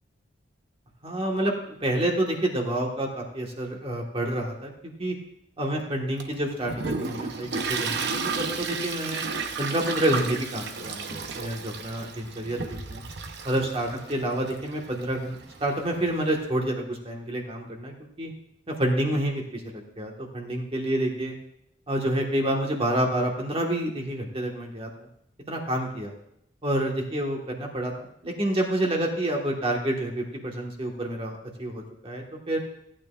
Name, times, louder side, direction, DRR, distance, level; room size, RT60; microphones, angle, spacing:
voice 1, 1.0-5.2 5.6-8.1 8.4-9.2 9.6-13.0 13.4-18.3 18.7-21.3 21.9-24.9 25.5-26.1 26.6-27.9 28.2-32.6, right 1 dB, 30° right, 0 dB, 1.4 m, -28 dB
Toilet flush, 6.2-16.4, right 4 dB, 60° right, 0.8 m, -33 dB
15.0 x 9.0 x 2.4 m, 0.75 s
head